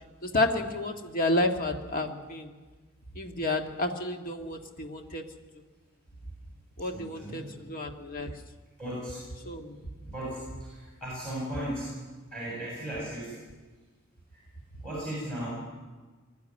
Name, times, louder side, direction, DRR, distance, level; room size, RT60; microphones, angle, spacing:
voice 1, 0.2-2.5 3.2-5.2 6.8-8.3 9.4-9.7, left 2 dB, 45° left, 4 dB, 1.9 m, -30 dB
voice 2, 6.8-7.5 8.8-9.2 10.0-11.9 12.3-13.4 14.3-14.4 14.8-15.5, right 1 dB, 5° left, -5 dB, 7.5 m, -36 dB
21.5 x 13.0 x 9.8 m, 1.3 s
head